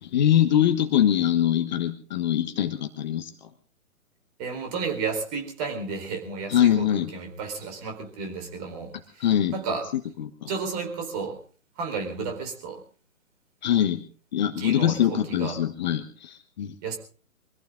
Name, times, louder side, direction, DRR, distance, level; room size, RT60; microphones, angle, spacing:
voice 1, 0.0-3.3 6.5-7.1 9.2-9.5 9.9-10.5 13.6-14.0 14.3-16.7, left 10 dB, 30° left, 8 dB, 1.3 m, -23 dB
voice 2, 4.4-9.2 9.5-9.8 10.5-11.4 11.8-12.8 14.6-15.6 16.8-17.0, right 4 dB, 30° right, 4 dB, 4.2 m, -32 dB
24.0 x 15.0 x 3.8 m, 0.40 s
figure-of-eight pair, 135°, 42 cm